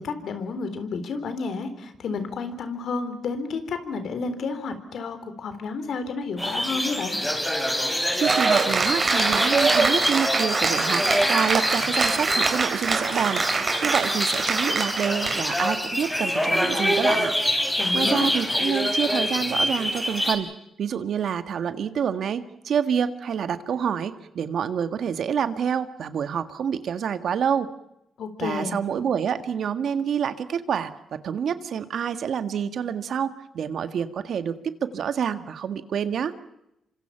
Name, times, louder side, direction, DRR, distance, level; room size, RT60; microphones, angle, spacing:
voice 1, 0.0-7.2 17.8-18.3 28.2-28.8, left 4 dB, 70° left, 9 dB, 3.8 m, -31 dB
sound 1, 6.4-20.3, left 1 dB, 10° left, 5.3 m, -26 dB
Cheering / Applause, 8.2-15.7, right 4 dB, 45° right, 3.9 m, -25 dB
voice 2, 8.2-11.0 11.3-13.4 13.8-17.3 17.9-20.5 20.8-27.7 28.4-30.9 31.2-34.5 34.8-36.3, right 7 dB, 70° right, 10 dB, 1.7 m, -27 dB
27.5 x 25.0 x 5.8 m, 0.85 s
cardioid pair, 70°, 0 cm